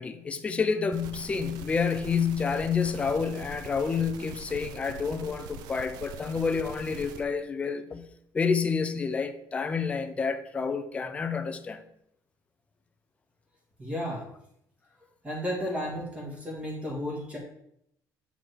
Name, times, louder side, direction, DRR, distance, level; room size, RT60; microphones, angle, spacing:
voice 1, 0.0-8.0 8.3-11.8, left 5 dB, 20° left, 0.5 m, -29 dB
sound 1, 0.9-7.2, right 4 dB, 75° right, 0.7 m, -43 dB
voice 2, 13.8-14.3 15.2-17.4, equal, 15° right, 2.0 m, -33 dB
8.0 x 4.3 x 4.6 m
cardioid pair, 170°, 7 cm